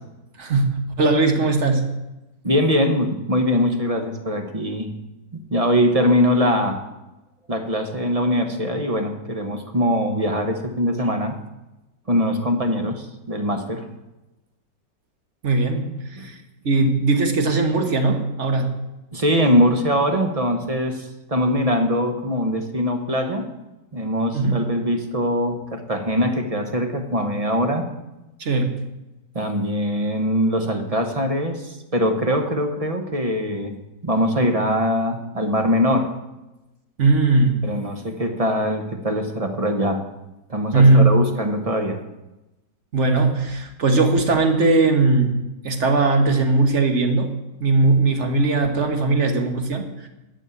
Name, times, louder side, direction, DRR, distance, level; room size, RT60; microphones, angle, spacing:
voice 1, 1.0-1.8 15.4-16.4 16.6-18.7 24.3-24.6 28.4-28.7 37.0-37.6 40.7-41.1 42.9-45.4 45.6-47.3 47.6-50.1, right 3 dB, 45° right, 6 dB, 1.5 m, -19 dB
voice 2, 2.4-4.9 5.3-6.8 7.5-11.3 12.1-13.9 16.2-16.3 19.1-23.5 23.9-27.9 29.3-33.7 34.0-36.1 37.6-40.0 40.5-42.0, equal, 25° right, 6 dB, 0.9 m, -22 dB
11.5 x 6.4 x 8.3 m, 1.0 s
omnidirectional pair, 1.9 m